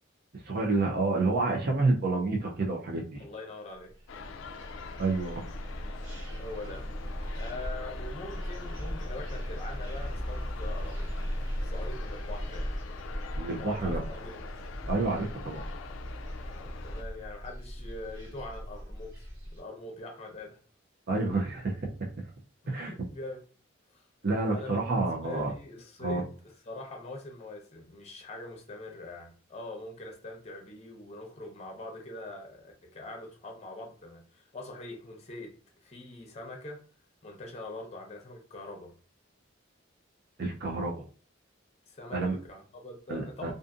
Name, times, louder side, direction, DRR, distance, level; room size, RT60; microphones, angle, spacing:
voice 1, 0.4-3.2 5.0-5.4 13.4-14.0 14.9-15.6 21.1-21.8 22.7-22.9 24.2-25.5 26.0-26.2 40.4-41.0 42.1-42.4 43.1-43.5, right 3 dB, 50° right, 0.5 m, -29 dB
voice 2, 3.2-4.0 6.4-6.8 7.4-11.2 11.6-12.8 13.6-14.4 16.4-20.6 22.6-23.4 23.9-24.0 24.5-24.8 25.2-26.3 26.7-35.5 35.8-36.8 37.2-38.9 41.9-43.5, left 2 dB, 35° left, 0.7 m, -43 dB
sound 1, 3.9-19.6, equal, 75° right, 0.9 m, -38 dB
sound 2, 4.1-17.0, left 4 dB, 75° left, 0.3 m, -45 dB
2.5 x 2.5 x 2.4 m
head